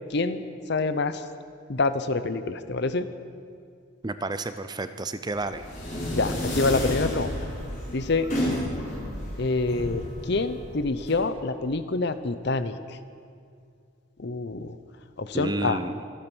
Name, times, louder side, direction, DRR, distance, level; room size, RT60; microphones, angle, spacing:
voice 1, 0.1-0.4 0.7-1.2 1.7-3.1 6.1-7.3 7.9-8.3 9.4-13.0 14.2-14.8 15.2-15.8, left 3 dB, 55° left, 12 dB, 0.7 m, -26 dB
voice 2, 4.0-5.7 15.3-16.0, right 2 dB, 20° right, 11 dB, 0.5 m, -31 dB
sound 1, 5.3-11.1, left 1 dB, 35° left, 4.7 m, -31 dB
25.0 x 8.9 x 6.2 m, 2.4 s
head